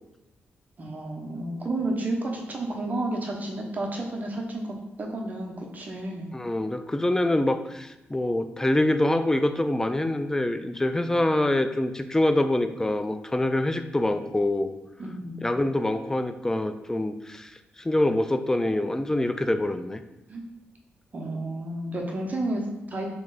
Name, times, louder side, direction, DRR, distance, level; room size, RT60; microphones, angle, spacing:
voice 1, 0.8-6.3 15.0-15.4 20.3-20.4 21.1-23.1, right 2 dB, 40° right, 0 dB, 0.9 m, -31 dB
voice 2, 6.3-14.7 15.4-17.5 17.8-20.0, left 1 dB, 10° left, 9 dB, 0.3 m, -25 dB
3.1 x 3.0 x 3.8 m, 0.97 s
cardioid pair, 75°, 4 cm